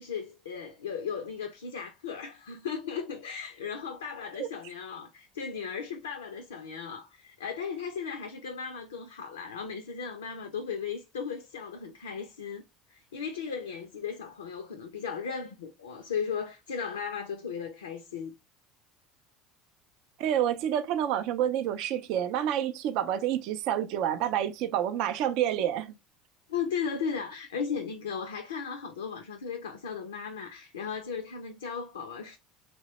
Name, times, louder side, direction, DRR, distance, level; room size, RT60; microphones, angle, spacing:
voice 1, 0.0-12.6 12.9-18.3 26.5-32.4, left 6 dB, 90° left, 0.3 m, -36 dB
voice 2, 20.2-25.9, right 10 dB, 65° right, 0.4 m, -28 dB
3.0 x 2.0 x 2.8 m
hypercardioid pair, 80°, 0 cm